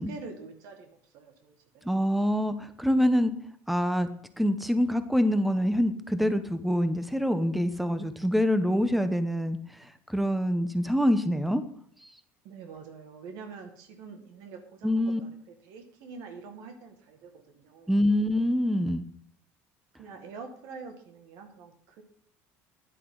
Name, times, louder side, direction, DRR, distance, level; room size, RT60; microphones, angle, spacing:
voice 1, 0.0-2.0 12.4-18.0 20.0-22.0, right 5 dB, 70° right, 5 dB, 1.8 m, -45 dB
voice 2, 1.8-3.3 3.7-4.1 4.4-9.6 10.1-11.6 14.8-15.2 17.9-19.0, equal, ahead, 10 dB, 0.8 m, -25 dB
10.5 x 8.3 x 3.9 m, 0.64 s
cardioid pair, 120°, 6 cm